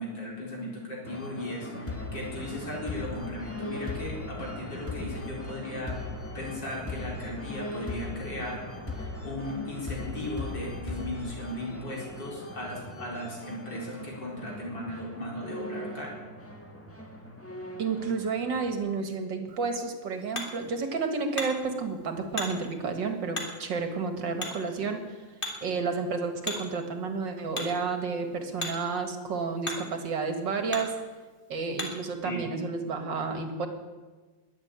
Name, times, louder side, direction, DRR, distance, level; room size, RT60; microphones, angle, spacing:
voice 1, 0.0-6.0 6.3-16.1 32.2-32.5, left 1 dB, 60° left, -2 dB, 4.7 m, -37 dB
sound 1, 1.0-18.7, left 2 dB, 10° left, 1.5 m, -39 dB
voice 2, 17.8-25.3 25.6-30.9 31.5-33.7, right 4 dB, 70° right, 6 dB, 2.4 m, -31 dB
Hammer, 19.5-32.1, left 2 dB, 25° left, 2.5 m, -41 dB
21.0 x 7.6 x 8.9 m, 1.3 s
omnidirectional pair, 2.1 m